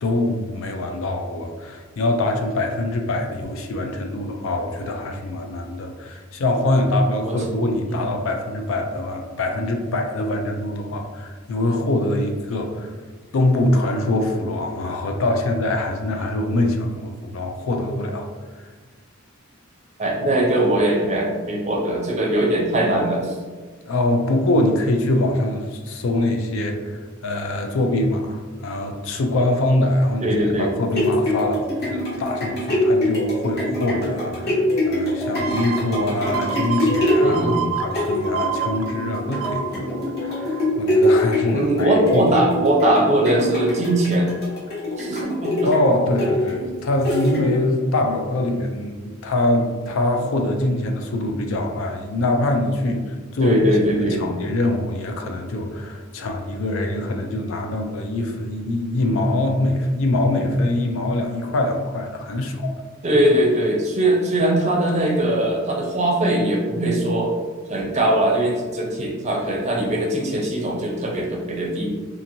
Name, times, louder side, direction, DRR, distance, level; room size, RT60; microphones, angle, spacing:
voice 1, 0.0-12.9 13.3-18.3 23.9-30.3 30.6-39.9 40.2-42.3 45.6-53.6 53.9-62.8, left 1 dB, 65° left, 4 dB, 0.4 m, -23 dB
voice 2, 20.0-23.4 30.2-30.7 37.2-37.7 41.5-44.3 45.0-45.7 53.4-54.2 63.0-67.3 67.7-72.0, right 1 dB, 35° right, -1 dB, 0.5 m, -21 dB
sound 1, 30.6-47.8 48.3-48.4, left 1 dB, 50° left, 1.0 m, -24 dB
sound 2, 35.4-40.8 41.3-41.4, right 7 dB, 85° right, 0.4 m, -30 dB
2.8 x 2.5 x 2.6 m, 1.4 s
head